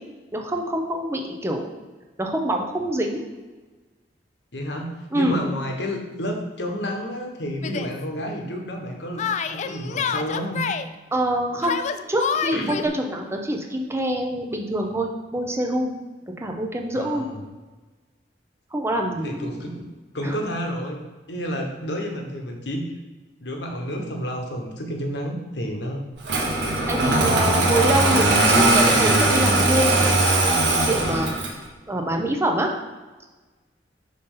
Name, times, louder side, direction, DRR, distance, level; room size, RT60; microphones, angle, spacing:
voice 1, 0.3-1.7 2.2-3.2 5.1-5.4 11.1-11.8 12.1-16.0 16.4-17.3 18.7-19.7 20.2-20.4 26.9-30.6 30.9-31.3 31.9-32.7, right 1 dB, 15° right, 2 dB, 0.7 m, -25 dB
voice 2, 4.5-10.7 12.5-12.8 16.9-17.4 19.2-19.8 20.1-21.0 21.3-22.9 23.4-26.0 26.8-27.5, equal, 75° left, 2 dB, 1.2 m, -30 dB
Yell, 7.6-7.9 9.2-10.9 11.6-12.9, left 7 dB, 40° left, 0.3 m, -27 dB
Engine starting, 26.2-31.6, right 2 dB, 85° right, 1.3 m, -19 dB
5.2 x 4.0 x 5.5 m, 1.3 s
head